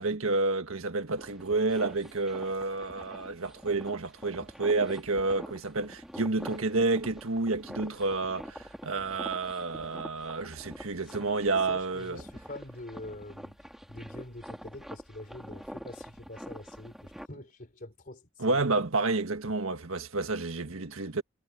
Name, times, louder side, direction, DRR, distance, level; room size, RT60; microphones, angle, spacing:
voice 1, 0.0-12.2 18.4-21.2, right 3 dB, 75° right, 1.6 m, -30 dB
sound 1, 1.2-17.3, equal, ahead, 2.9 m, -46 dB
voice 2, 11.7-13.6 13.9-18.6, left 1 dB, 40° left, 3.9 m, -45 dB
head